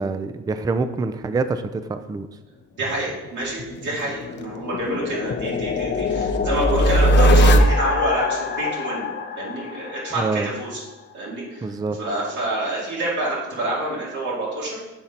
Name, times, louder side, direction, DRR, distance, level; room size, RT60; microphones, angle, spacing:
voice 1, 0.0-2.3 10.2-10.5 11.6-12.0, right 3 dB, 15° right, 10 dB, 0.3 m, -25 dB
voice 2, 2.8-9.0 9.4-10.8 11.1-11.7 12.0-14.8, right 1 dB, 75° right, -6 dB, 2.3 m, -27 dB
sound 1, 3.6-10.4, equal, 35° left, 0.6 m, -20 dB
7.1 x 3.8 x 4.3 m, 1.0 s
cardioid pair, 90°, 30 cm